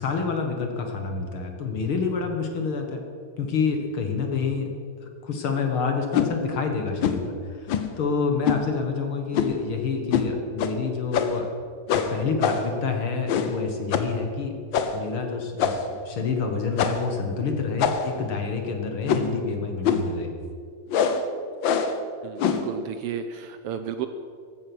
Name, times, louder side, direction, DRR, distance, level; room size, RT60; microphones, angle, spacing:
voice 1, 0.0-3.0 3.4-4.7 5.0-11.5 11.9-14.6 14.9-20.3, left 5 dB, 55° left, 4 dB, 2.0 m, -28 dB
sound 1, 6.1-6.3 7.0-7.3 7.7-8.0 8.5-8.6 9.3-9.6 10.1-10.3 10.6-10.7 11.1-11.5 11.9-12.8 13.3-13.6 13.9-14.2 14.7-15.0 15.6-16.0 16.8-17.1 17.8-18.2 19.1-19.4 19.8-20.1 20.9-21.2 21.6-22.0 22.4-22.7, left 7 dB, 75° left, 1.1 m, -24 dB
voice 2, 22.2-24.1, right 8 dB, 80° right, 9 dB, 1.3 m, -32 dB
15.5 x 12.5 x 6.1 m, 2.2 s
omnidirectional pair, 3.3 m